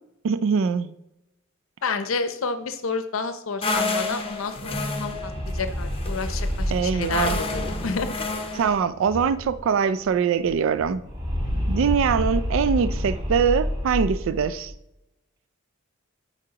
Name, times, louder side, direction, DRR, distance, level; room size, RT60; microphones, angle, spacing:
voice 1, 0.2-0.9 6.7-7.4 8.5-11.0 11.7-14.7, right 6 dB, 65° right, 13 dB, 0.3 m, -23 dB
voice 2, 1.8-8.1, left 4 dB, 70° left, 9 dB, 0.6 m, -30 dB
sound 1, 3.6-8.8, left 3 dB, 25° left, 0.7 m, -30 dB
sound 2, 4.4-9.7 10.0-10.1 10.4-14.7, equal, 25° right, 1.4 m, -29 dB
8.6 x 4.8 x 2.9 m, 0.88 s
head